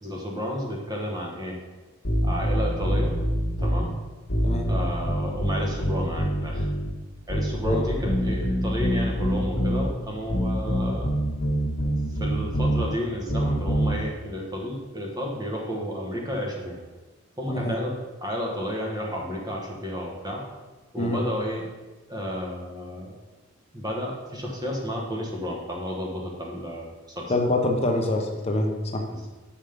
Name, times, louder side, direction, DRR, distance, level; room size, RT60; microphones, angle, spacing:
voice 1, 0.0-1.6 2.2-3.2 3.6-4.0 4.7-6.7 7.3-11.1 12.2-16.8 17.4-17.9 18.2-20.4 20.9-21.7 22.1-23.1 23.7-26.9 27.1-27.3 29.1-29.3, equal, 20° right, -1 dB, 1.2 m, -32 dB
sound 1, 2.0-3.9 4.3-6.9 7.3-9.9 10.3-12.8 13.3-14.0, equal, 65° left, 1.5 m, -25 dB
voice 2, 27.3-29.0, left 2 dB, 30° left, 2 dB, 0.8 m, -25 dB
6.4 x 5.7 x 5.0 m, 1.2 s
head